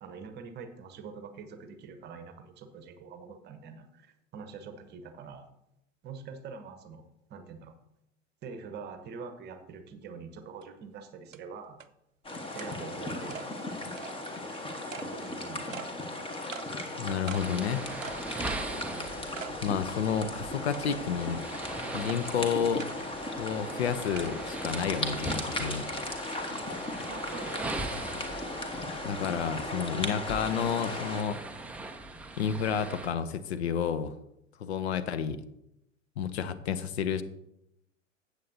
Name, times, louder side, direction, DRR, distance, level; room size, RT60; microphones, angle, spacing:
voice 1, 0.0-5.5 6.0-7.0 7.3-7.7 8.4-11.8 12.5-13.4 15.0-15.9 18.7-19.1 27.0-27.9, right 5 dB, 25° right, 9 dB, 1.1 m, -45 dB
sound 1, 10.6-10.7 11.3-11.4 11.8-11.9 12.6-12.7 13.3-13.5 14.0-14.1 14.9-15.1 15.7-15.9 16.5-16.7 17.3-17.5 18.0-18.3 18.7-18.8 19.4-19.6 20.0-20.1 20.7-21.1 22.1-22.2 22.8-23.0 24.2-24.3 25.4-25.5, right 7 dB, 85° right, 0.6 m, -42 dB
sound 2, 12.2-31.2, left 2 dB, 15° left, 1.3 m, -37 dB
voice 2, 17.0-17.9 19.6-21.4 21.9-22.9 23.4-26.3 29.0-31.4 32.4-34.1 34.6-35.4 36.2-37.2, left 7 dB, 55° left, 12 dB, 0.7 m, -30 dB
sound 3, 17.3-33.1, right 2 dB, 5° right, 0.4 m, -41 dB
14.0 x 8.1 x 2.7 m, 0.82 s
figure-of-eight pair, 90°, 39 cm